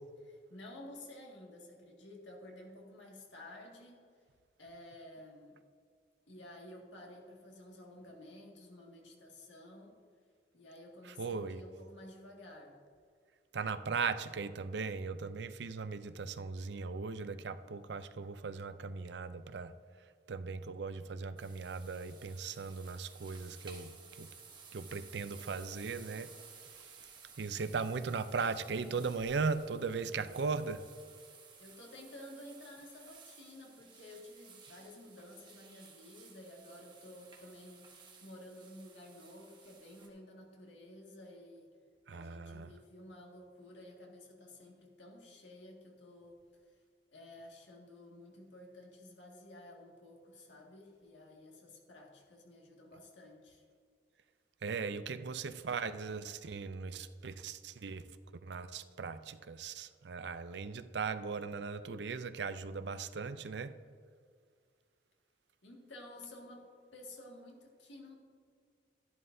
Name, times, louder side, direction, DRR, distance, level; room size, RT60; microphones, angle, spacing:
voice 1, 0.2-4.0 4.6-5.6 6.3-10.0 10.5-12.8 31.6-37.9 38.2-41.7 42.1-46.8 47.1-53.6 65.6-68.2, left 1 dB, 80° left, 2.0 m, -52 dB
voice 2, 11.0-11.6 13.5-24.3 24.7-30.9 42.1-42.7 54.6-63.8, right 5 dB, 70° right, 0.5 m, -38 dB
sound 1, 21.4-40.1, right 5 dB, 25° right, 1.2 m, -56 dB
12.0 x 11.0 x 2.7 m
head